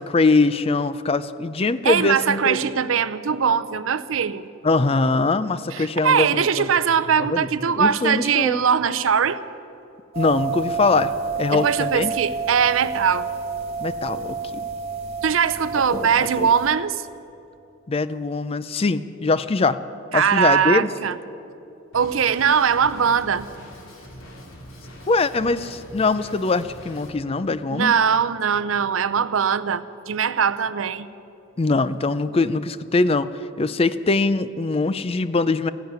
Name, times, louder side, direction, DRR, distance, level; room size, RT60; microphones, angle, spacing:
voice 1, 0.0-2.6 4.6-6.7 7.2-7.5 7.8-8.6 10.2-12.1 13.8-14.7 15.9-16.5 17.9-19.8 20.1-20.9 25.1-27.9 31.6-33.3 33.6-35.7, left 3 dB, 30° left, 14 dB, 0.4 m, -22 dB
voice 2, 1.8-4.5 5.7-9.4 11.5-13.3 15.2-17.1 20.1-21.2 21.9-23.5 27.7-31.1, right 7 dB, 80° right, 15 dB, 0.6 m, -21 dB
sound 1, 10.1-16.7, right 4 dB, 30° right, 1.7 m, -29 dB
Drum kit, 21.9-27.1, equal, 85° left, 2.8 m, -43 dB
15.0 x 10.5 x 9.3 m, 2.7 s
head